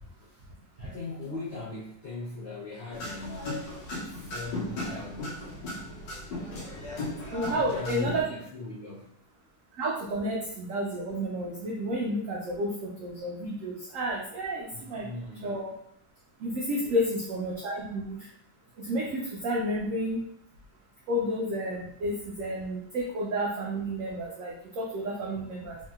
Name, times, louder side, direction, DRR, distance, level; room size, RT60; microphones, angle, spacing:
voice 1, 0.8-5.5 7.4-9.3 14.7-15.6 16.8-17.0, left 2 dB, 65° left, -8 dB, 0.6 m, -40 dB
sound 1, 2.9-8.2, left 2 dB, 85° left, 1.4 m, -36 dB
voice 2, 7.3-8.3 9.7-15.1 15.4-15.7 16.4-18.3 18.8-20.2 21.1-25.8, equal, 80° right, -2 dB, 0.7 m, -31 dB
3.1 x 2.8 x 2.3 m, 0.69 s
omnidirectional pair, 1.9 m